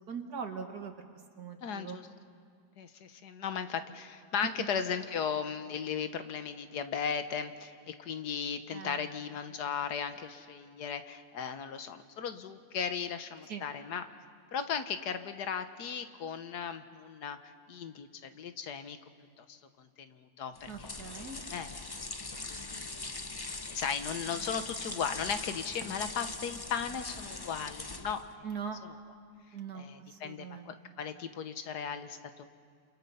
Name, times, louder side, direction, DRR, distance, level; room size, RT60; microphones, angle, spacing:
voice 1, 0.1-0.9 1.4-2.0 4.6-4.7 8.7-9.1 13.5-13.7 20.7-21.4 28.4-28.8 29.5-30.9, right 6 dB, 75° right, 4 dB, 1.9 m, -41 dB
voice 2, 1.6-2.1 2.8-14.1 14.5-17.4 17.7-19.0 19.4-21.1 21.5-21.8 22.5-23.4 23.7-28.3 29.7-32.5, left 7 dB, 80° left, 9 dB, 1.7 m, -37 dB
sound 1, 20.5-28.4, left 3 dB, 25° left, 0.5 m, -41 dB
28.5 x 28.5 x 5.6 m, 2.2 s
omnidirectional pair, 1.7 m